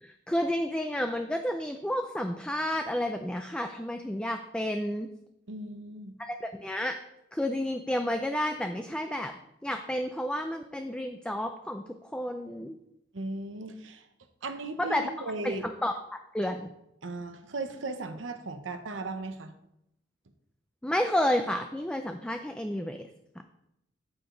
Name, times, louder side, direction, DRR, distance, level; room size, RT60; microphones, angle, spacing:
voice 1, 0.0-5.1 6.2-7.0 7.3-9.3 9.6-11.8 12.1-12.8 14.8-15.0 15.4-16.7 20.8-23.0 23.4-23.5, left 1 dB, 5° left, 5 dB, 0.4 m, -31 dB
voice 2, 5.5-6.1 13.1-14.1 14.4-15.6 17.0-19.5, right 2 dB, 80° right, 8 dB, 0.9 m, -37 dB
13.5 x 4.9 x 3.9 m, 0.82 s
head